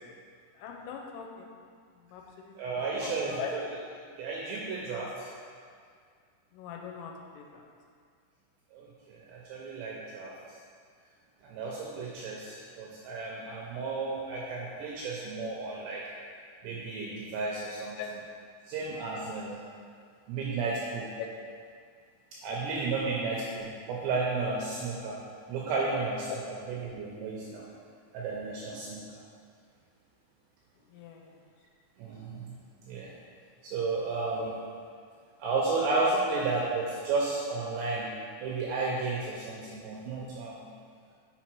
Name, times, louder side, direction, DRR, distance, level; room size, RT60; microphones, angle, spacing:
voice 1, 0.5-1.5 2.0-3.5 6.5-7.7 14.4-14.5 18.0-18.1 21.2-21.3 26.3-26.4 30.9-31.4 34.3-34.5 36.1-36.2, left 8 dB, 85° left, 1 dB, 3.1 m, -41 dB
voice 2, 2.6-3.6 4.2-5.3 8.7-10.3 11.4-16.0 16.6-18.0 18.7-19.6 20.3-21.1 22.4-25.2 25.5-27.6 28.1-29.0 32.0-32.5 32.9-33.1 33.6-34.4 35.4-38.1 38.4-40.7, right 3 dB, 85° right, -4 dB, 2.5 m, -33 dB
7.0 x 4.5 x 4.5 m, 2.1 s
omnidirectional pair, 5.7 m